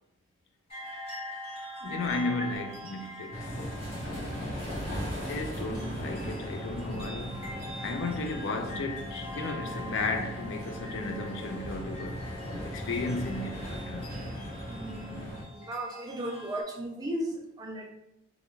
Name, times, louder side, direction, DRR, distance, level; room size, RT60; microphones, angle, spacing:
sound 1, 0.7-16.6, left 1 dB, 30° left, 1.3 m, -44 dB
voice 1, 1.8-3.5 4.0-4.7 5.3-7.4 7.8-12.3 12.6-14.2, left 3 dB, 65° left, 0.4 m, -34 dB
sound 2, 3.3-15.4, equal, 10° left, 0.9 m, -38 dB
voice 2, 14.7-17.9, right 1 dB, 20° right, 0.4 m, -36 dB
2.5 x 2.2 x 3.0 m
head